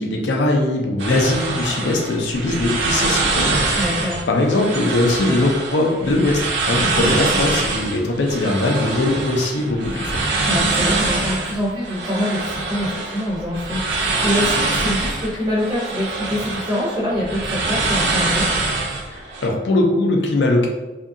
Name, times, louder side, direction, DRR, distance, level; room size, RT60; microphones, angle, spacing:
voice 1, 0.0-3.6 3.9-10.2 19.1-20.7, left 2 dB, 80° left, 1 dB, 0.5 m, -20 dB
sound 1, 1.0-19.5, right 3 dB, 85° right, 0.5 m, -24 dB
voice 2, 3.8-4.2 10.4-18.5, left 1 dB, 20° right, -6 dB, 0.5 m, -25 dB
2.7 x 2.5 x 2.5 m, 1.1 s
head